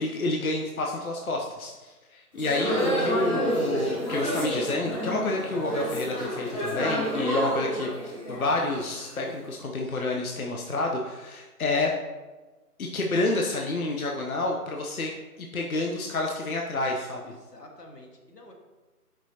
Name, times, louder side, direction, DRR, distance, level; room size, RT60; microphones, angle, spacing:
voice 1, 0.0-11.9 12.8-15.1 15.4-17.2, left 2 dB, 65° left, 0 dB, 0.8 m, -29 dB
sound 1, 2.3-9.3, equal, 20° left, 1.3 m, -29 dB
voice 2, 9.8-10.2 17.2-18.5, left 1 dB, 90° left, 0 dB, 1.6 m, -50 dB
7.2 x 5.5 x 2.8 m, 1.2 s
figure-of-eight pair, 155°, 47 cm